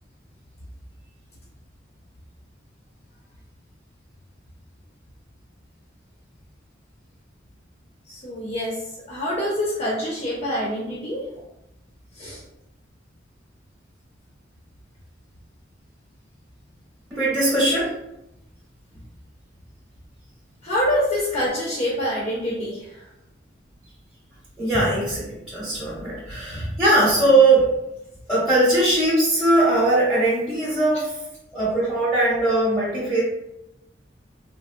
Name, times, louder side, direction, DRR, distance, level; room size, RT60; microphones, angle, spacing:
voice 1, 8.1-8.8 9.1-11.3 12.1-12.4 20.6-23.0 26.5-26.7, equal, 35° left, -5 dB, 0.6 m, -26 dB
voice 2, 17.1-17.9 24.6-27.7 28.3-31.2 31.5-33.2, right 2 dB, 5° right, -9 dB, 0.8 m, -20 dB
3.4 x 2.1 x 2.5 m, 0.86 s
head